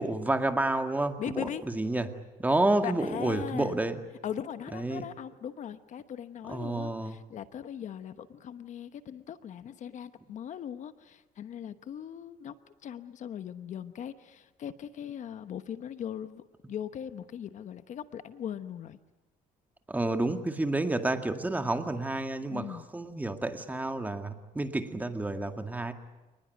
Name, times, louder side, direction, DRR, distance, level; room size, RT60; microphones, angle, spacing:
voice 1, 0.0-2.1 2.4-4.0 4.7-5.0 6.5-7.2 19.9-25.9, right 2 dB, 10° right, 6 dB, 2.0 m, -30 dB
voice 2, 1.2-1.6 2.8-3.8 4.2-19.0 22.5-22.9, left 9 dB, 55° left, 11 dB, 1.1 m, -39 dB
28.0 x 20.0 x 9.3 m, 1.1 s
cardioid pair, 105°, 15 cm